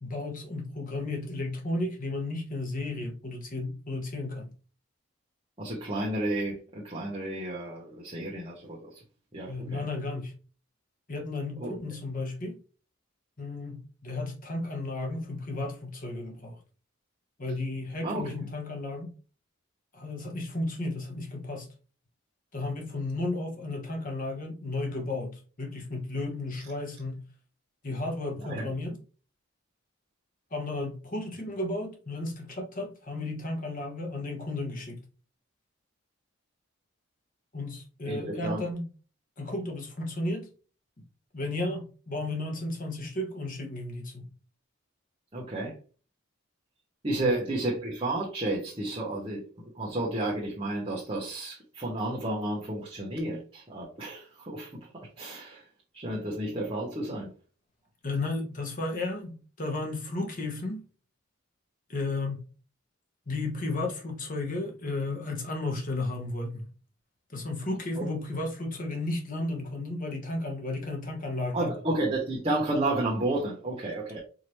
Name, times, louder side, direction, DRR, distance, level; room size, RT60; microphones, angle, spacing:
voice 1, 0.0-4.5 9.5-10.3 11.1-12.6 13.4-16.6 17.4-19.1 19.9-21.7 22.5-27.2 27.8-29.0 30.5-35.0 37.5-38.8 39.4-40.5 41.3-44.3 47.2-47.4 58.0-60.8 61.9-62.4 63.3-66.7 67.3-71.7, left 2 dB, 40° left, 1.1 m, -33 dB
voice 2, 5.6-9.0 9.3-9.8 11.6-11.7 18.0-18.3 28.4-28.6 38.1-38.6 45.3-45.7 47.0-55.6 55.9-57.3 67.9-68.1 71.5-74.2, right 2 dB, 25° right, 1.0 m, -32 dB
4.8 x 2.9 x 3.1 m
head